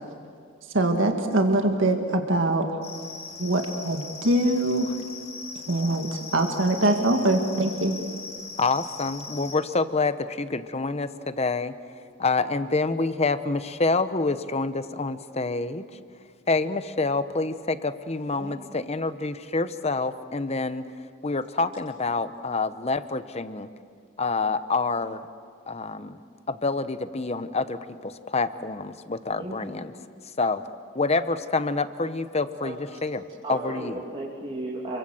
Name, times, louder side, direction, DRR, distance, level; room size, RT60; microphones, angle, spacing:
voice 1, 0.7-2.7 3.4-4.9 5.7-8.0, right 1 dB, 65° right, 4 dB, 1.9 m, -23 dB
sound 1, 2.8-9.5, left 4 dB, 80° left, 4.0 m, -40 dB
voice 2, 8.6-11.7 12.2-15.9 16.5-20.8 21.2-23.7 24.2-25.2 25.7-26.2 26.5-29.9 30.4-30.6 30.9-33.2 33.5-33.9, left 3 dB, 30° left, 12 dB, 0.8 m, -27 dB
voice 3, 18.4-18.8 29.4-29.8 32.6-32.8 33.4-35.0, right 2 dB, 30° right, -4 dB, 2.7 m, -35 dB
29.5 x 23.5 x 7.7 m, 2.2 s
head